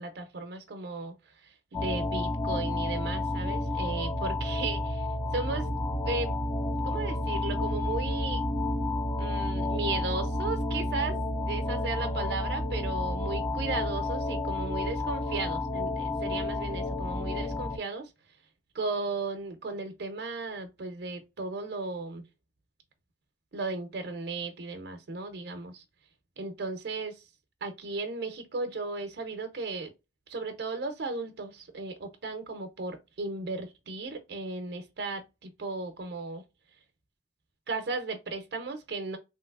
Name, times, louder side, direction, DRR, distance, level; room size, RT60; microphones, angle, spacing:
voice 1, 0.0-5.1 5.3-5.7 6.0-6.4 6.8-8.4 9.2-11.2 11.5-18.1 18.7-22.2 23.5-25.8 26.4-27.3 27.6-29.9 30.3-36.4 37.7-39.2, right 3 dB, 65° right, 0.5 m, -35 dB
sound 1, 1.7-17.8, left 1 dB, 20° left, 0.4 m, -30 dB
3.2 x 2.8 x 2.3 m
head